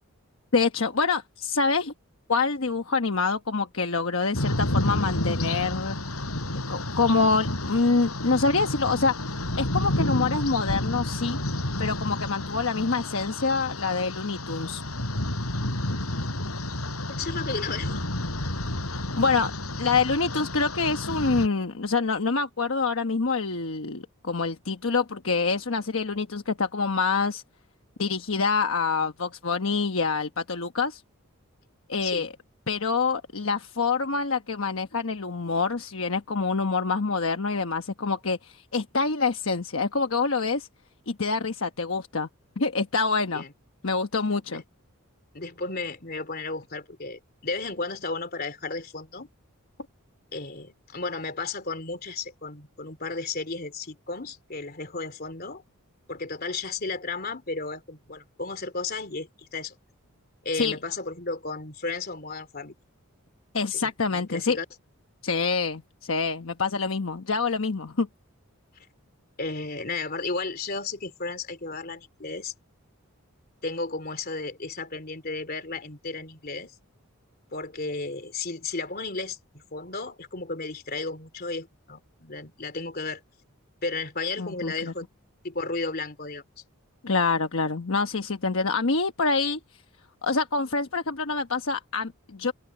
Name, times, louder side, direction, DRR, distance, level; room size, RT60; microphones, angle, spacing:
voice 1, 0.5-1.9 2.3-6.0 6.7-9.1 9.6-11.4 11.8-14.8 18.9-19.5 19.8-27.4 28.0-31.0 31.9-32.3 32.7-40.7 41.1-42.3 42.6-43.4 43.8-44.6 60.5-60.8 63.5-64.6 65.2-68.1 84.4-84.9 87.0-89.6 90.2-92.5, left 4 dB, 65° left, 1.1 m, -26 dB
sound 1, 4.3-21.5, left 1 dB, 85° left, 5.6 m, -30 dB
voice 2, 17.2-18.0 32.0-32.3 43.3-43.5 44.5-44.6 45.3-49.3 50.3-55.6 56.1-59.7 60.4-62.8 63.8-64.6 69.4-72.5 73.6-76.7 77.5-83.2 83.8-85.1 85.4-86.4, left 3 dB, 45° left, 3.1 m, -33 dB
open air
head